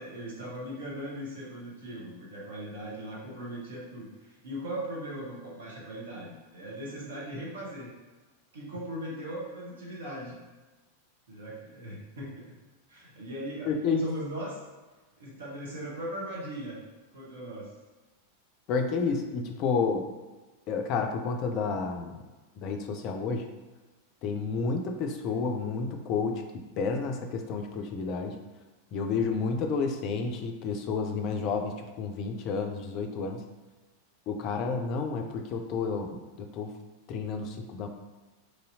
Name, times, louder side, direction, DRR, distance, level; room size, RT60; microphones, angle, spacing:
voice 1, 0.0-7.9 8.5-10.4 11.3-12.5 12.9-13.7 14.0-14.6 15.2-16.8 17.1-17.7, right 1 dB, 60° right, -4 dB, 0.9 m, -39 dB
voice 2, 13.7-14.0 18.7-20.1 20.7-22.2 22.6-23.4 24.2-28.4 28.9-33.4 34.3-36.7 37.1-37.9, left 4 dB, 40° left, 4 dB, 0.4 m, -30 dB
3.1 x 2.7 x 2.6 m, 1.2 s
figure-of-eight pair, 90°, 0 cm